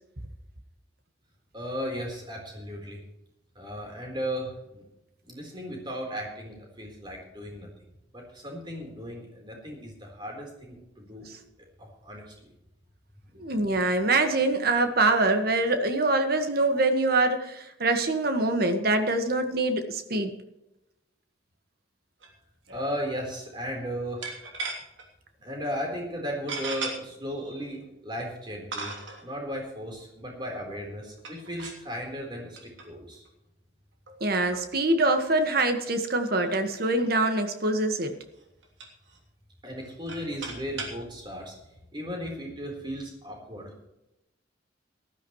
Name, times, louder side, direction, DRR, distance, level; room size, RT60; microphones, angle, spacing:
voice 1, 1.5-3.0 3.6-4.9 5.2-7.7 8.1-11.3 11.8-12.5 13.3-13.4 22.7-24.3 25.4-33.3 39.6-41.5 41.9-43.7, equal, 25° right, 1 dB, 4.0 m, -36 dB
voice 2, 13.4-20.4 34.2-38.2, right 2 dB, 55° right, 6 dB, 1.6 m, -24 dB
sound 1, 22.2-22.4 22.7-22.8 24.2-25.0 25.6-25.7 26.5-26.9 27.8-27.9 28.7-29.2 31.2-31.9 32.6-32.9 33.3-33.4 34.1-34.2 34.5-34.7 35.0-35.1 35.4-35.5 35.8-35.9 36.3-37.3 37.9-38.1 38.4-39.2 39.8-41.0, right 3 dB, 80° right, 3.1 m, -37 dB
18.5 x 13.0 x 3.2 m, 0.90 s
head